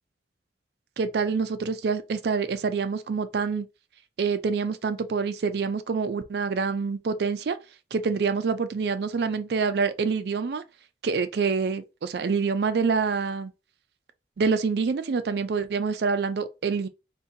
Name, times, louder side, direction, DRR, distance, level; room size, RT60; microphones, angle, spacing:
voice 1, 1.0-3.7 4.2-7.6 7.9-10.6 11.0-13.5 14.4-16.9, right 5 dB, 65° right, 0.4 m, -26 dB
3.8 x 2.6 x 2.6 m
head